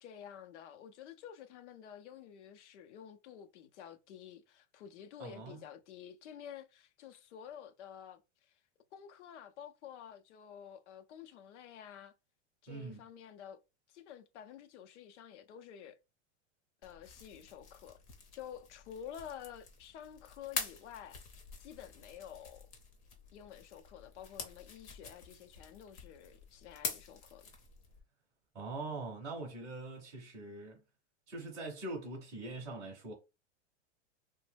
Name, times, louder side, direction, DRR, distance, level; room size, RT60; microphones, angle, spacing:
voice 1, 0.0-8.6 8.9-12.1 12.6-13.6 13.9-16.0 16.8-18.0 18.3-21.2 21.6-22.7 23.3-27.5, left 9 dB, 75° left, 0.6 m, -50 dB
voice 2, 5.2-5.6 12.7-13.0 28.5-30.8 31.3-33.1, right 2 dB, 10° right, 0.5 m, -43 dB
sound 1, 16.8-28.0, left 5 dB, 30° left, 0.7 m, -46 dB
2.9 x 2.1 x 3.2 m
supercardioid pair, 175°, 35 cm